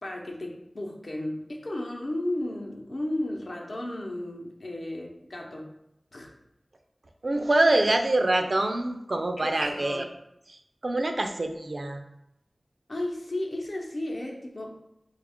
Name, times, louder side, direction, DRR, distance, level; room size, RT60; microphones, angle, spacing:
voice 1, 0.0-5.6 6.1-6.3 9.4-10.0 12.9-14.7, left 1 dB, 70° left, 0 dB, 0.7 m, -34 dB
voice 2, 7.2-10.1 10.5-12.0, right 2 dB, 65° right, 5 dB, 0.4 m, -25 dB
4.1 x 2.3 x 3.5 m, 0.83 s
wide cardioid pair, 45°, 0 cm